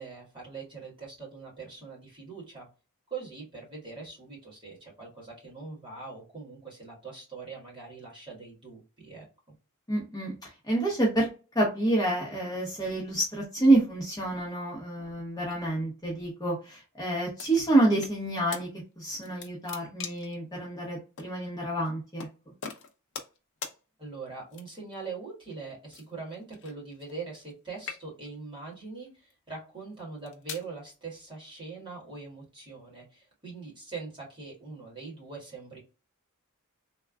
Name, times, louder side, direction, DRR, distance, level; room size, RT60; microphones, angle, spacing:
voice 1, 0.0-2.7 3.1-9.5 24.0-35.8, right 4 dB, 20° right, -4 dB, 1.7 m, -42 dB
voice 2, 9.9-11.3 11.5-18.7 19.0-22.3, right 2 dB, 15° left, -4 dB, 0.9 m, -28 dB
sound 1, 17.4-18.2 18.5-18.6 19.1-20.4 21.2-21.3 22.2-22.3 22.6-23.4 23.6-23.8 24.5-24.9 25.9-27.5 27.8-28.4 29.1-29.3 30.0-30.7, left 6 dB, 55° left, 0.6 m, -41 dB
3.4 x 2.3 x 2.3 m, 0.32 s
head